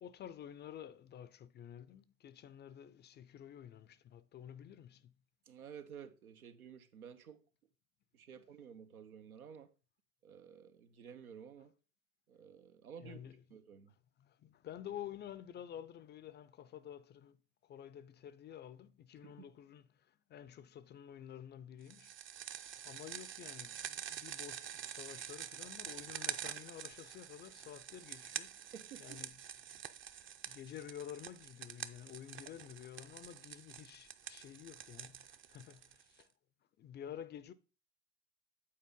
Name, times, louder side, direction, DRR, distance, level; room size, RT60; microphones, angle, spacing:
voice 1, 0.0-5.1 11.6-11.7 13.0-13.4 14.2-22.1 22.8-28.6 29.0-29.4 29.7-29.8 30.2-36.3 36.8-37.5, left 10 dB, 25° left, 0.4 m, -51 dB
voice 2, 5.5-7.4 8.1-9.7 10.2-11.7 12.3-13.2 13.5-13.9 19.2-19.3 28.7-29.2, right 7 dB, 90° right, 1.1 m, -53 dB
sound 1, 21.9-36.2, right 9 dB, 30° right, 0.6 m, -47 dB
8.6 x 4.2 x 5.3 m
hypercardioid pair, 90°, 42 cm